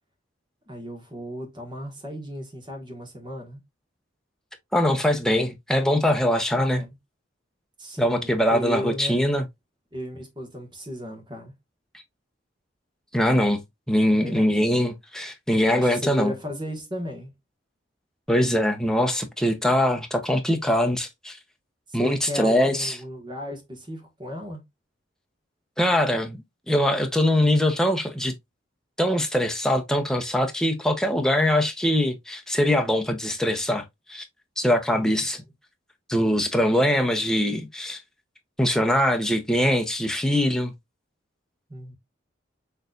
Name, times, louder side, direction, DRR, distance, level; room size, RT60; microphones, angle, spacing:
voice 1, 0.7-3.6 6.6-6.9 7.8-9.2 9.9-11.5 14.2-14.6 15.7-17.3 21.9-24.6 34.9-35.1 41.7-41.9, left 1 dB, 25° right, 1.5 m, -35 dB
voice 2, 4.7-6.8 8.0-9.5 13.1-13.6 13.9-16.3 18.3-21.4 21.9-23.0 25.8-26.4 26.7-28.3 29.0-33.8 34.1-34.2 34.6-35.4 36.1-38.0 38.6-40.7, left 1 dB, 5° left, 0.8 m, -22 dB
6.6 x 3.2 x 2.5 m
head